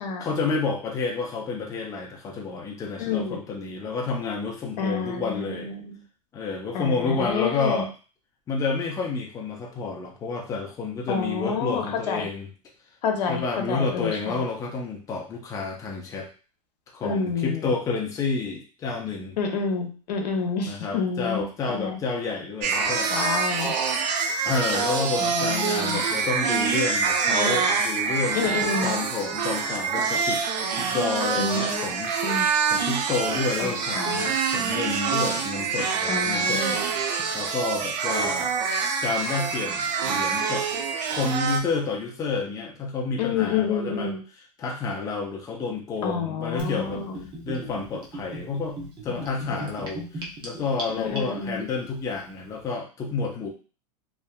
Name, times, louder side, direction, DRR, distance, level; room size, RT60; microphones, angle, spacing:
voice 1, 0.2-5.7 6.3-7.9 8.5-12.5 13.3-16.3 16.9-19.4 20.7-23.1 24.4-28.6 28.8-30.4 30.8-32.1 32.7-36.6 37.2-38.5 39.0-40.7 41.1-44.2 44.6-47.0 47.4-48.8 49.0-53.5, left 4 dB, 15° left, 0 dB, 0.5 m, -29 dB
voice 2, 3.0-3.4 4.8-6.0 6.7-7.9 11.1-12.3 13.0-14.4 17.0-17.7 19.4-22.0 23.1-23.7 25.2-26.0 28.3-28.9 31.3-31.9 32.2-32.5 33.6-34.3 36.1-36.8 40.0-40.2 43.2-44.2 46.0-47.2 49.1-49.6 51.0-51.6, left 5 dB, 80° left, 3 dB, 0.7 m, -29 dB
sound 1, 22.6-41.6, right 5 dB, 85° right, 0.5 m, -26 dB
Gurgling / Bathtub (filling or washing), 46.6-51.6, right 1 dB, 25° right, 0.7 m, -37 dB
2.6 x 2.3 x 2.2 m, 0.36 s
supercardioid pair, 135°, 21 cm